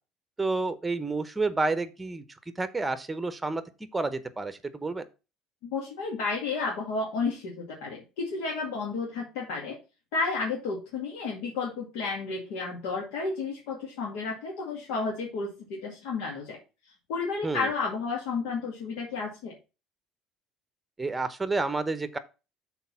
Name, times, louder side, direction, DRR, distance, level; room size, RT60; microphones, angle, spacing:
voice 1, 0.4-2.2 2.6-3.6 3.9-5.0 17.4-17.7 21.0-22.2, right 3 dB, 10° right, 12 dB, 0.8 m, -29 dB
voice 2, 5.7-9.8 10.1-16.6 17.1-19.5, left 4 dB, 85° left, -3 dB, 2.1 m, -32 dB
6.4 x 4.2 x 5.8 m, 0.30 s
cardioid pair, 130°, 0 cm